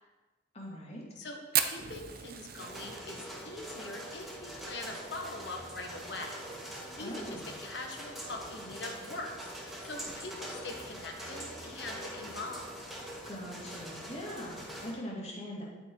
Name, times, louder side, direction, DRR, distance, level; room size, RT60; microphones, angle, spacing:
voice 1, 0.5-1.0 7.0-7.5 13.3-15.7, equal, 35° left, -3 dB, 2.5 m, -41 dB
voice 2, 1.2-6.4 6.6-12.7, left 2 dB, 65° left, 2 dB, 1.6 m, -43 dB
Fire, 1.5-6.0 6.3-6.4 6.7-6.8 7.1-7.6 8.1-8.2 9.2-9.4, right 9 dB, 50° right, 0.8 m, -35 dB
sound 1, 2.6-14.9, equal, ahead, 2.1 m, -44 dB
11.5 x 9.1 x 4.7 m, 1.2 s
head